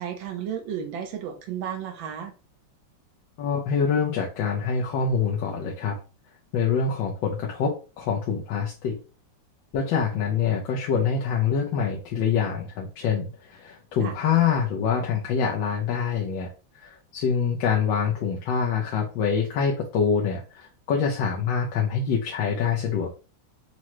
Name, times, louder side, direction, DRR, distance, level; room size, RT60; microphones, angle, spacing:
voice 1, 0.0-2.3 14.0-14.1, right 9 dB, 90° right, 4 dB, 1.6 m, -33 dB
voice 2, 3.4-6.0 6.5-9.0 9.7-16.5 16.7-23.1, left 6 dB, 80° left, -1 dB, 1.4 m, -25 dB
6.1 x 2.1 x 3.0 m, 0.33 s
omnidirectional pair, 2.1 m